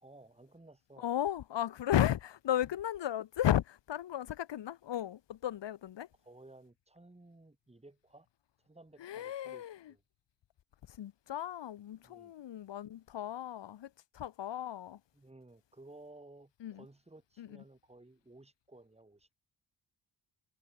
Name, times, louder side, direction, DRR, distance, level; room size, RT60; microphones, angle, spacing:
voice 1, 0.0-1.1 6.2-8.3 8.6-10.0 12.0-12.3 15.1-19.3, right 2 dB, 15° right, 5.2 m, -56 dB
voice 2, 1.0-6.1 9.0-9.9 10.9-15.0 16.6-16.8 17.4-17.5, left 11 dB, 65° left, 1.0 m, -35 dB
wide cardioid pair, 130°, 47 cm